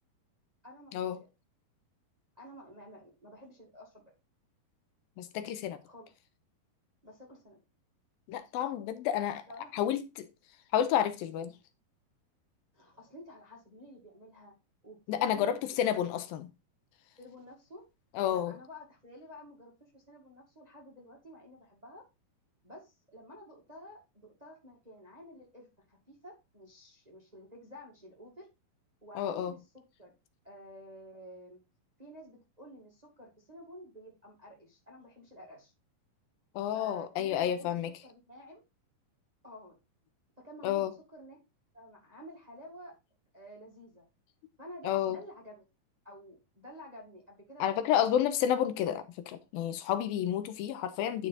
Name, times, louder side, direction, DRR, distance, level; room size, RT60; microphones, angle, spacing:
voice 1, 0.6-1.3 2.4-4.0 5.8-6.1 7.0-7.6 9.5-9.7 12.7-14.5 14.8-15.6 17.2-17.8 18.3-22.0 22.6-28.5 29.0-29.6 30.0-30.1 30.4-31.6 32.0-35.7 36.7-38.6 39.4-39.7 40.4-41.4 41.7-42.9 43.3-44.0 44.6-45.7 46.0-48.0, equal, 15° right, 1.3 m, -51 dB
voice 2, 5.2-5.8 8.3-9.4 9.7-10.3 10.7-11.5 15.1-16.5 18.2-18.5 29.2-29.5 36.6-37.9 40.6-40.9 44.8-45.2 47.6-51.3, left 10 dB, 85° left, 2.4 m, -30 dB
9.9 x 4.5 x 4.0 m
omnidirectional pair, 4.3 m